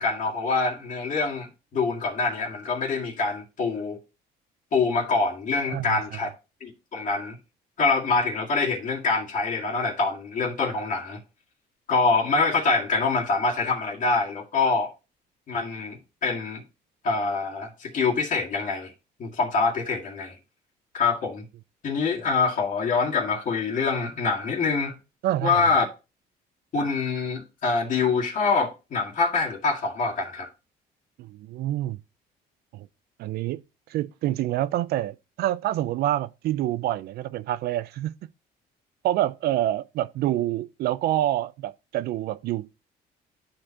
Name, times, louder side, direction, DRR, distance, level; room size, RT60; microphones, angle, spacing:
voice 1, 0.0-4.0 4.7-6.3 6.6-7.4 7.8-11.2 11.9-14.9 15.5-16.6 17.0-18.9 19.2-20.4 20.9-21.4 21.8-25.0 25.4-25.9 26.7-30.5, left 4 dB, 50° left, 2.0 m, -25 dB
voice 2, 5.7-6.0 25.2-25.7 31.2-32.0 32.7-32.9 33.2-33.6 33.9-38.1 39.0-42.9, right 13 dB, 70° right, 0.5 m, -27 dB
11.5 x 4.4 x 2.9 m
cardioid pair, 110°, 17 cm